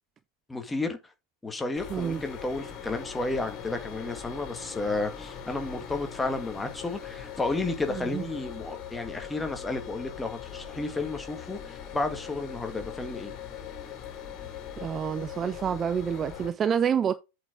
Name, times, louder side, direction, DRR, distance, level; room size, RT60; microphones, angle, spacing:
voice 1, 0.5-1.0 1.4-13.3, left 2 dB, 10° left, 1.8 m, -32 dB
sound 1, 1.8-16.5, left 8 dB, 35° left, 3.3 m, -41 dB
voice 2, 1.9-2.2 7.9-8.2 14.8-17.1, right 8 dB, 25° right, 0.5 m, -28 dB
8.2 x 5.1 x 5.0 m
figure-of-eight pair, 90°, 0 cm